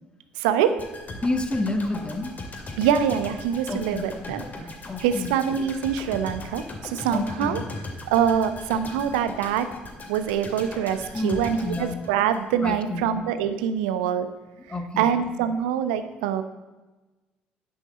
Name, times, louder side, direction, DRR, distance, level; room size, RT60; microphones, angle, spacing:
voice 1, 0.4-0.8 2.8-4.7 5.0-7.6 8.1-9.7 10.1-14.3 15.0-16.4, right 8 dB, 75° right, 11 dB, 0.8 m, -24 dB
sound 1, 0.8-12.8 13.1-13.3, left 2 dB, 40° left, 2.5 m, -39 dB
voice 2, 1.2-2.4 3.7-4.1 4.8-5.3 7.1-7.6 11.1-12.0 12.6-13.1 14.7-15.1, left 2 dB, 20° left, 7 dB, 1.6 m, -29 dB
9.8 x 8.1 x 6.9 m, 1.2 s
figure-of-eight pair, 50°, 5 cm